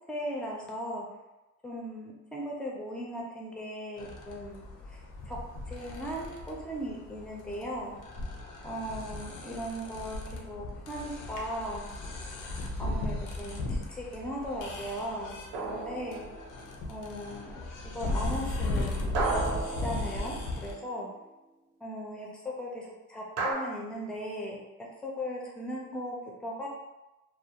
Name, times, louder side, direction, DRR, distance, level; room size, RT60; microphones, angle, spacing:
voice 1, 0.1-1.1 1.6-4.6 4.9-5.0 5.3-5.4 5.7-8.0 8.6-11.9 12.8-16.3 16.9-19.2 19.8-21.1 21.8-24.6 25.0-26.7, equal, 5° left, -2 dB, 0.4 m, -38 dB
sound 1, 4.0-20.7, left 2 dB, 90° left, 0.5 m, -37 dB
sound 2, 15.5-16.7 19.1-20.8 23.4-23.5, right 3 dB, 50° right, 0.5 m, -33 dB
2.3 x 2.0 x 2.8 m, 1.0 s
cardioid pair, 140°, 30 cm